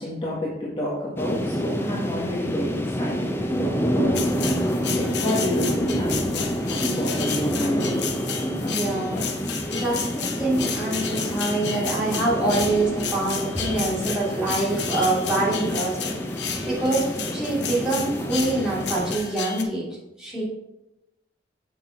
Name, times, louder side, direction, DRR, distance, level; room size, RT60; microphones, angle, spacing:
voice 1, 0.0-4.1 4.7-8.0 8.4-9.3, left 1 dB, 30° left, -5 dB, 1.7 m, -30 dB
sound 1, 1.2-19.1, equal, 15° left, 0.7 m, -28 dB
sound 2, 4.1-19.6, left 6 dB, 70° left, 0.9 m, -32 dB
voice 2, 8.6-9.2 9.7-17.1 17.3-19.9 20.2-20.4, right 2 dB, 5° right, -8 dB, 3.0 m, -25 dB
7.4 x 5.9 x 4.6 m, 0.94 s
head